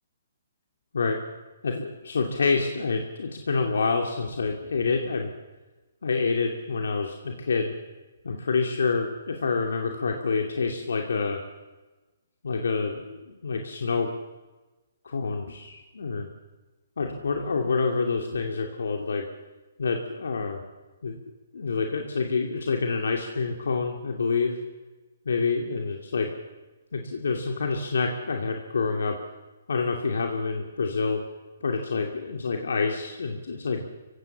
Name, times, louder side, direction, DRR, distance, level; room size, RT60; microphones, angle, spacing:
voice 1, 1.6-5.3 6.0-7.7 8.2-11.4 12.4-14.1 15.0-16.3 17.0-19.3 19.8-20.6 21.0-21.2 21.5-24.6 25.2-26.3 26.9-29.2 29.7-31.2 31.6-33.9, left 4 dB, 80° left, 3 dB, 2.6 m, -27 dB
25.0 x 16.5 x 7.4 m, 1.1 s
hypercardioid pair, 150°, 0 cm